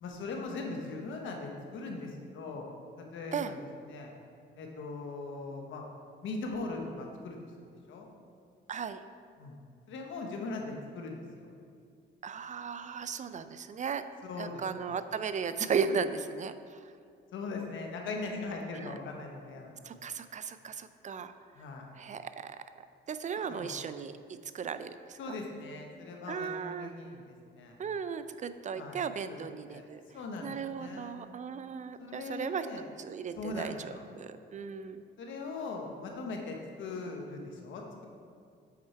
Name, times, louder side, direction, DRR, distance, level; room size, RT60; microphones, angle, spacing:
voice 1, 0.0-2.7 3.0-3.5 3.8-4.1 4.6-5.8 6.2-7.4 7.9-8.1 9.4-9.6 9.9-11.5 14.2-15.0 17.3-19.8 21.5-21.9 23.5-23.8 25.2-27.7 28.7-29.0 29.3-29.4 29.7-29.8 30.1-31.2 32.0-32.8 33.4-34.0 35.2-38.1, left 3 dB, 75° left, 2 dB, 1.1 m, -40 dB
voice 2, 8.7-9.0 12.2-14.0 14.4-16.6 18.8-18.9 19.8-21.3 22.0-22.6 23.1-24.1 24.5-25.4 26.3-26.9 27.8-30.0 30.4-32.7 33.0-35.0, right 6 dB, 40° right, 11 dB, 0.4 m, -36 dB
8.4 x 4.5 x 4.5 m, 2.3 s
cardioid pair, 90°, 20 cm